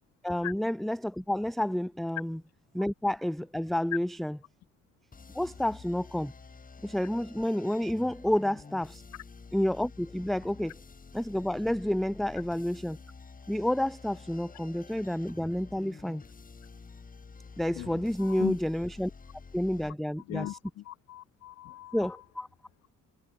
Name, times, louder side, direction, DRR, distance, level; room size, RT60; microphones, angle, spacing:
voice 1, 0.2-2.4 2.7-4.4 5.3-6.3 6.8-9.0 9.5-10.8 11.1-13.0 13.5-16.2 17.6-19.1 19.5-20.5 21.9-22.5, left 1 dB, ahead, 0.7 m, -30 dB
sound 1, 5.1-19.9, left 4 dB, 30° left, 2.3 m, -49 dB
voice 2, 17.7-18.6 20.2-22.2, left 15 dB, 60° left, 0.4 m, -39 dB
cardioid pair, 90°, 30 cm